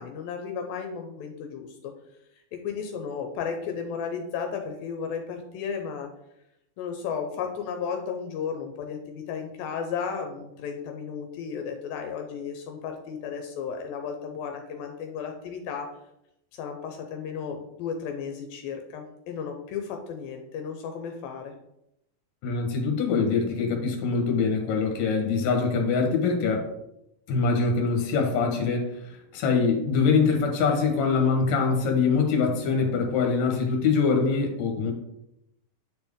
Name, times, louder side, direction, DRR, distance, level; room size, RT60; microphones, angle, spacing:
voice 1, 0.0-1.9 2.6-6.1 6.8-15.9 16.5-21.5, left 6 dB, 80° left, 4 dB, 2.5 m, -34 dB
voice 2, 22.4-26.7 27.3-28.9 29.3-34.9, left 5 dB, 60° left, 3 dB, 2.2 m, -23 dB
9.2 x 4.4 x 3.6 m, 0.82 s
omnidirectional pair, 4.2 m